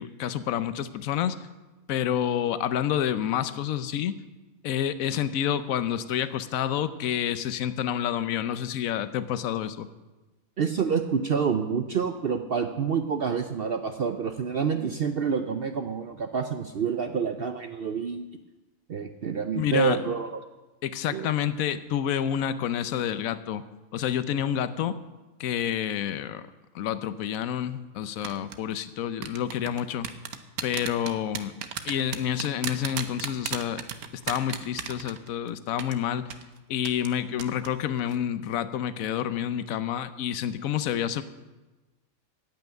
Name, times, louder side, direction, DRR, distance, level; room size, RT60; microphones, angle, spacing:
voice 1, 0.0-1.4 1.9-4.1 4.6-9.9 19.5-20.0 20.8-23.6 23.9-24.9 25.4-26.4 26.7-30.1 30.6-31.5 31.8-33.8 34.1-36.3 36.7-41.2, left 10 dB, 75° left, 13 dB, 1.1 m, -28 dB
voice 2, 10.6-18.3 18.9-20.4 21.1-21.3, right 6 dB, 55° right, 7 dB, 0.7 m, -28 dB
sound 1, 28.2-28.6 29.2-35.5 35.8-35.9 36.3-36.4 36.8-37.1 37.4-37.7 38.0-38.2, right 8 dB, 85° right, 1.3 m, -33 dB
14.5 x 5.8 x 9.1 m, 1.1 s
omnidirectional pair, 1.5 m